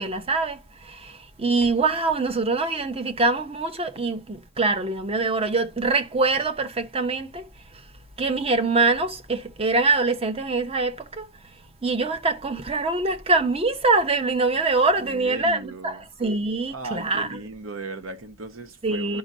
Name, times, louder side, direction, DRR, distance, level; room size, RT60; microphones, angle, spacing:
voice 1, 0.0-7.5 8.2-11.3 11.8-17.4 18.8-19.2, right 3 dB, 30° right, 0.7 m, -24 dB
voice 2, 15.0-16.1 16.7-19.2, right 2 dB, 75° right, 0.9 m, -37 dB
10.5 x 5.2 x 2.6 m
head